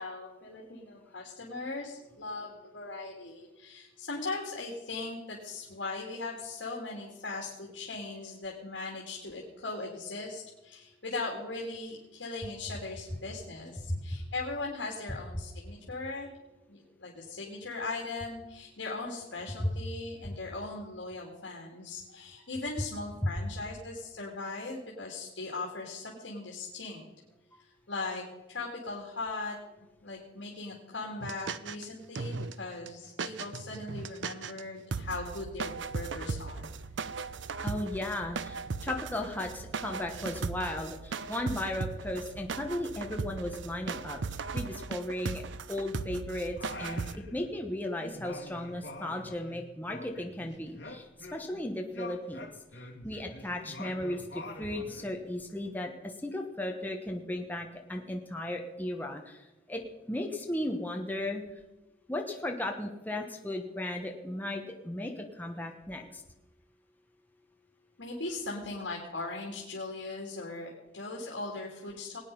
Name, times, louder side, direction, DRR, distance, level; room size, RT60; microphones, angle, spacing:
voice 1, 0.0-16.3 16.7-27.0 27.9-29.6 30.0-36.7 68.0-72.2, left 3 dB, 80° left, -2 dB, 2.4 m, -39 dB
sound 1, 31.2-31.8 32.1-32.5 32.9-33.0 33.2-34.6 34.9-47.2, right 4 dB, 80° right, 0.6 m, -37 dB
voice 2, 37.6-44.2 44.5-45.4 45.7-52.5 53.0-59.8 60.1-61.4 62.1-66.2, left 1 dB, 10° left, 2 dB, 1.1 m, -35 dB
Singing, 46.5-47.7 48.0-51.6 51.9-55.1, left 2 dB, 65° left, 2.2 m, -46 dB
19.5 x 9.1 x 5.4 m, 1.0 s
head